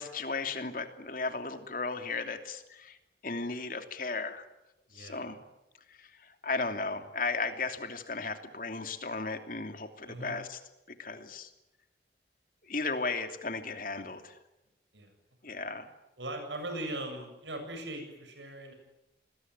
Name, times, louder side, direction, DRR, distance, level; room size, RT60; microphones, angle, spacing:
voice 1, 0.0-3.0 3.2-4.5 4.9-5.4 5.9-10.6 11.0-11.5 12.7-14.4 15.4-15.9, left 3 dB, 50° left, 7 dB, 2.9 m, -35 dB
voice 2, 4.9-5.3 10.1-10.4 14.9-15.1 15.5-15.6 16.2-18.7, right 1 dB, 85° right, 5 dB, 8.0 m, -40 dB
28.5 x 21.5 x 9.7 m, 0.92 s
head